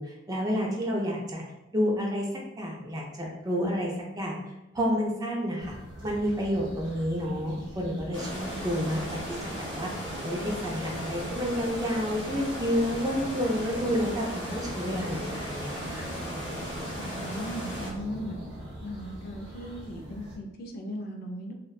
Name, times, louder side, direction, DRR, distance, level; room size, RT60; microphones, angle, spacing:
voice 1, 0.0-1.4 1.7-2.3 2.6-4.4 4.7-5.7 6.0-9.2 9.8-10.0 10.2-16.1, equal, 20° right, -1 dB, 0.4 m, -30 dB
sound 1, 5.6-20.4, equal, 65° right, 0.7 m, -42 dB
sound 2, 8.1-17.9, equal, 25° left, 0.8 m, -37 dB
voice 2, 17.0-18.4 18.8-21.5, equal, 50° left, 3 dB, 0.3 m, -38 dB
2.6 x 2.1 x 2.3 m, 1.0 s
head